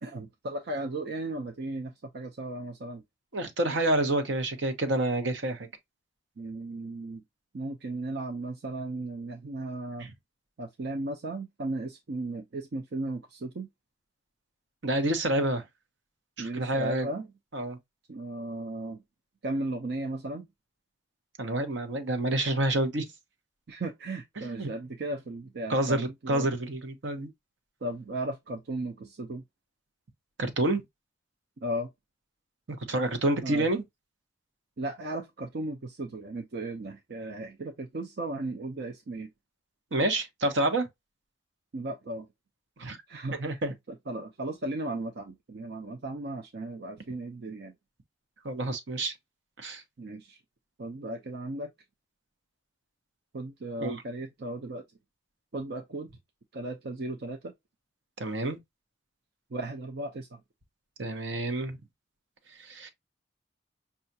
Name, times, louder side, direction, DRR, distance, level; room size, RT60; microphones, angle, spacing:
voice 1, 0.0-3.0 6.4-7.2 7.5-10.1 10.6-13.7 16.4-17.3 18.1-19.0 19.4-20.5 23.7-26.5 27.8-29.4 31.6-31.9 33.4-33.7 34.8-39.3 41.7-42.3 43.1-43.6 43.9-47.7 50.0-50.4 50.8-51.7 53.3-54.8 55.5-56.1 56.5-57.5 59.5-60.4, right 2 dB, 60° right, 0.5 m, -36 dB
voice 2, 3.3-5.7 10.0-10.1 14.8-15.6 16.4-17.1 17.5-17.8 21.4-23.1 24.4-24.7 25.7-27.3 30.4-30.8 32.7-33.8 39.9-40.9 42.8-43.0 43.4-43.7 48.4-49.1 49.6-49.8 53.8-54.0 58.2-58.6 61.0-61.8 62.6-62.9, right 1 dB, 80° right, 0.9 m, -28 dB
5.5 x 2.4 x 2.7 m
head